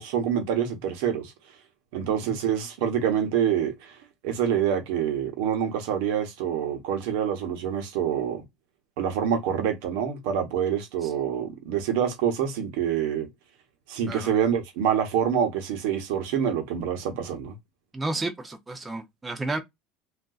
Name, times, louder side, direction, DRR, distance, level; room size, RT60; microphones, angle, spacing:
voice 1, 0.0-1.3 1.9-4.0 4.2-8.4 9.0-13.3 13.9-17.6, right 8 dB, 75° right, 0.9 m, -26 dB
voice 2, 2.0-2.4 11.0-11.1 14.1-14.3 17.9-19.6, right 2 dB, 15° right, 0.6 m, -32 dB
3.6 x 2.5 x 2.3 m
supercardioid pair, 130°, 0 cm